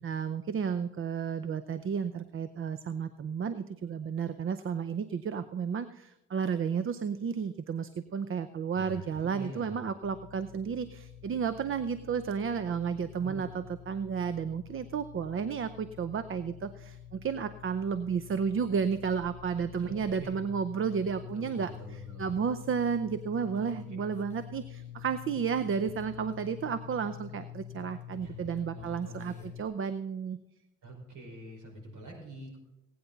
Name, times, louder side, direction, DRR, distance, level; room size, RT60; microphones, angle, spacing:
voice 1, 0.0-30.4, right 6 dB, 45° right, 12 dB, 0.7 m, -32 dB
voice 2, 8.7-9.8 13.2-13.5 19.8-20.4 21.3-22.2 23.5-23.7 28.2-28.3 28.7-29.5 30.8-32.6, right 1 dB, 80° right, 1 dB, 4.9 m, -45 dB
sound 1, 10.0-29.6, left 11 dB, 70° left, 0.7 m, -47 dB
sound 2, 20.8-29.5, left 1 dB, 10° left, 4.1 m, -59 dB
18.0 x 9.4 x 4.0 m, 0.91 s
cardioid pair, 90°, 30 cm